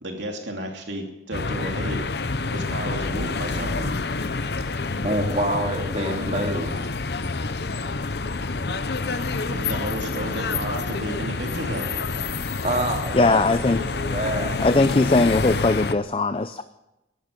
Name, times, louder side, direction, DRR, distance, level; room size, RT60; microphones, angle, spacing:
voice 1, 0.0-2.0 2.5-3.9 9.5-11.9, right 1 dB, 75° right, 1 dB, 2.8 m, -32 dB
sound 1, 1.3-16.0, left 3 dB, 60° left, 0.8 m, -28 dB
voice 2, 5.0-6.8 12.6-14.6 15.4-15.6, right 1 dB, 35° right, 1 dB, 2.7 m, -27 dB
voice 3, 13.1-13.8 14.6-16.6, left 3 dB, 30° left, 11 dB, 0.5 m, -20 dB
20.5 x 12.0 x 5.2 m, 0.94 s
head